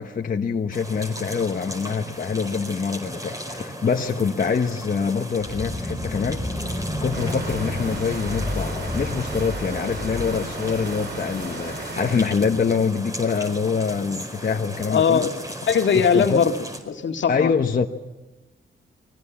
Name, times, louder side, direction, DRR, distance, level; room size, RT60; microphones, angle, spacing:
voice 1, 0.0-6.8 7.0-15.3 15.9-16.5 17.3-17.9, left 5 dB, 45° left, 2 dB, 1.3 m, -25 dB
sound 1, 0.7-16.8, right 1 dB, 15° right, 5.1 m, -36 dB
sound 2, 5.4-11.4, left 1 dB, 10° left, 4.0 m, -31 dB
sound 3, 7.1-12.3, right 3 dB, 55° right, 3.9 m, -36 dB
voice 2, 14.9-16.5 16.9-17.5, left 6 dB, 65° left, 4 dB, 2.1 m, -20 dB
30.0 x 22.0 x 7.3 m, 1.1 s
cardioid pair, 105°, 21 cm